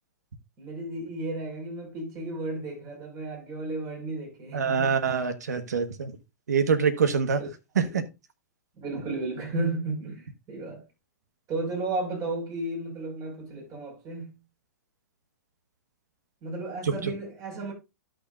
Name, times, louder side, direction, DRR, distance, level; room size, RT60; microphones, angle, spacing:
voice 1, 0.6-4.9 7.8-7.9 8.8-10.8 11.5-14.4 16.4-17.7, right 2 dB, 35° right, 5.3 m, -33 dB
voice 2, 4.5-6.1 6.5-7.4 7.7-8.0 16.8-17.1, right 6 dB, 75° right, 1.4 m, -25 dB
12.5 x 6.5 x 2.5 m
hypercardioid pair, 115°, 9 cm